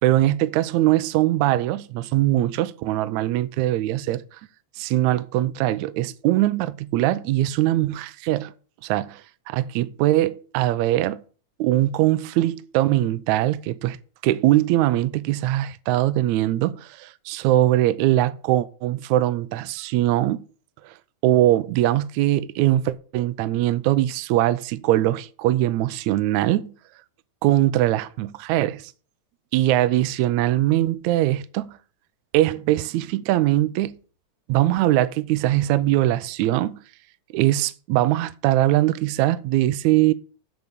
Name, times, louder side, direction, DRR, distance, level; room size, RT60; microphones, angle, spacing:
voice 1, 0.0-4.4 4.8-8.5 8.8-9.2 9.5-11.2 11.6-14.0 14.2-20.5 20.8-20.9 21.2-26.7 27.4-28.9 29.5-31.8 32.3-34.0 34.5-36.8 37.3-40.1, right 14 dB, 80° right, 1.8 m, -21 dB
7.9 x 7.3 x 6.8 m
omnidirectional pair, 3.8 m